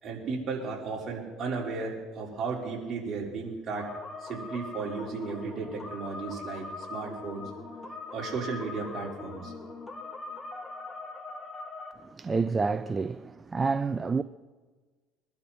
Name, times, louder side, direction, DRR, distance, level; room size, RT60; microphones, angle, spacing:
voice 1, 0.0-3.9 4.2-7.5 8.1-9.5, right 4 dB, 45° right, 4.8 m, -34 dB
sound 1, 3.8-11.9, left 3 dB, 20° left, 2.4 m, -41 dB
voice 2, 12.2-14.2, right 4 dB, 25° right, 0.5 m, -28 dB
24.0 x 12.0 x 4.4 m
supercardioid pair, 95°, 0 cm